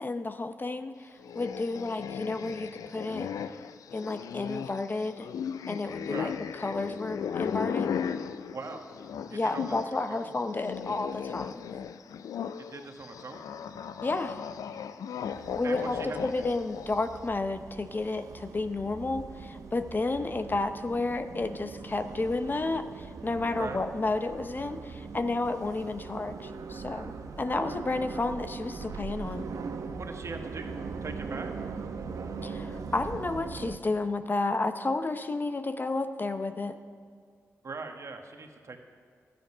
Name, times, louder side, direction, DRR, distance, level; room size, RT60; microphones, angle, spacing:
voice 1, 0.0-3.3 3.9-5.3 5.7-7.9 9.3-11.6 14.0-14.4 15.6-29.5 32.4-36.8, left 3 dB, 35° left, 9 dB, 0.6 m, -31 dB
sound 1, 1.2-10.0 10.2-17.0, left 7 dB, 85° left, 0.4 m, -36 dB
voice 2, 8.5-8.9 9.3-10.3 12.6-13.5 15.6-16.4 23.6-23.8 29.9-31.5 37.6-38.8, right 3 dB, 55° right, 4 dB, 1.3 m, -40 dB
sound 2, 15.3-33.8, right 5 dB, 75° right, 0.8 m, -41 dB
12.0 x 9.4 x 5.6 m, 2.1 s
cardioid pair, 60°, 6 cm